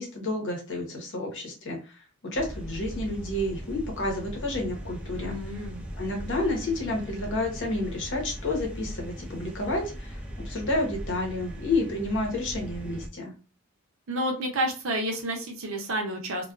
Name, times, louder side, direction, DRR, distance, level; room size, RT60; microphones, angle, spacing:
voice 1, 0.0-5.3 6.0-13.3, left 2 dB, 55° left, 1 dB, 0.8 m, -30 dB
sound 1, 2.3-13.1, equal, 5° right, 0.4 m, -39 dB
voice 2, 5.2-5.8 14.1-16.5, right 1 dB, 60° right, 3 dB, 0.6 m, -30 dB
2.3 x 2.2 x 2.4 m, 0.33 s
head